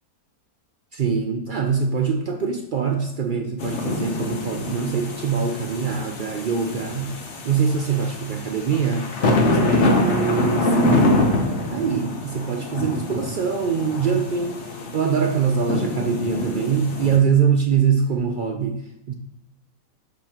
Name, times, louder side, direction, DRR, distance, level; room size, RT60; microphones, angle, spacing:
voice 1, 0.9-7.2 7.4-9.1 9.5-10.8 11.7-19.1, right 6 dB, 75° right, 5 dB, 0.4 m, -23 dB
sound 1, 3.6-17.2, left 1 dB, 55° left, 1.1 m, -25 dB
6.9 x 6.1 x 2.9 m, 0.86 s
omnidirectional pair, 1.5 m